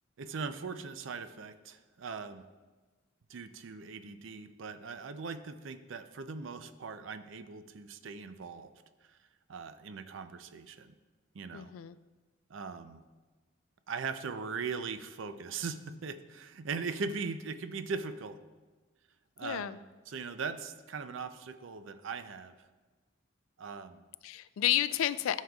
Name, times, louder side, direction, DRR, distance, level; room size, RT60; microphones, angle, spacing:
voice 1, 0.2-2.4 3.3-8.7 9.0-9.2 9.5-10.9 11.3-11.7 12.5-13.0 13.9-18.4 19.4-19.8 20.1-22.5 23.6-24.1, right 5 dB, 65° right, 10 dB, 0.5 m, -40 dB
voice 2, 11.5-12.0 19.4-19.8 24.2-25.4, left 12 dB, 80° left, 15 dB, 0.3 m, -31 dB
13.0 x 6.4 x 2.3 m, 1.3 s
head